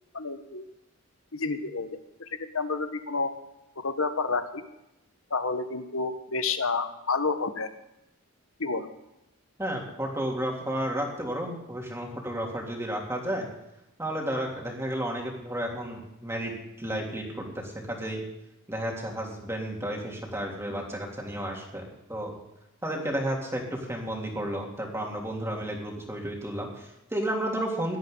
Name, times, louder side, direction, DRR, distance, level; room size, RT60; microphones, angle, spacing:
voice 1, 0.1-0.6 1.3-3.3 3.8-4.6 5.3-7.7 8.6-8.9, left 4 dB, 75° left, 9 dB, 1.3 m, -30 dB
voice 2, 9.6-13.5 14.0-18.2 18.7-21.8 22.1-22.3 22.8-28.0, right 1 dB, 10° right, -1 dB, 3.1 m, -32 dB
18.0 x 12.5 x 3.9 m, 0.89 s
head